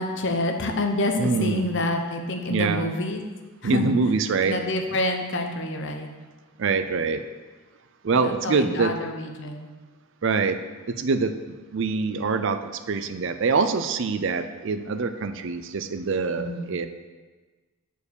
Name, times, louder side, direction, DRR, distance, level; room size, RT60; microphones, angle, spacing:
voice 1, 0.0-3.2 3.6-3.9 4.4-6.1 8.1-9.7 16.4-16.8, left 1 dB, 55° left, 4 dB, 0.8 m, -27 dB
voice 2, 1.2-1.7 2.5-2.8 3.6-4.6 6.6-7.2 8.0-8.9 10.2-10.6 10.9-16.9, right 4 dB, 55° right, 9 dB, 0.4 m, -24 dB
6.8 x 4.6 x 6.9 m, 1.3 s
head